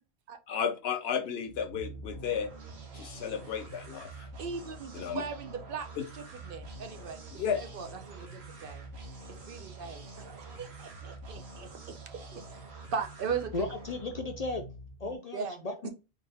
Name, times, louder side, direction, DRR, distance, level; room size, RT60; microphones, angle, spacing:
voice 1, 0.5-2.5 2.9-4.3 4.9-5.2 6.0-6.1 7.3-7.6, left 7 dB, 75° left, 0.9 m, -33 dB
sound 1, 1.4-15.1, right 2 dB, 85° right, 1.2 m, -46 dB
voice 2, 4.4-5.9 6.1-8.9 9.3-12.0 12.3-13.5 15.0-15.9, right 6 dB, 60° right, 0.7 m, -39 dB
voice 3, 13.5-14.6 15.0-15.9, left 3 dB, 50° left, 0.5 m, -35 dB
4.1 x 2.5 x 3.4 m
omnidirectional pair, 1.1 m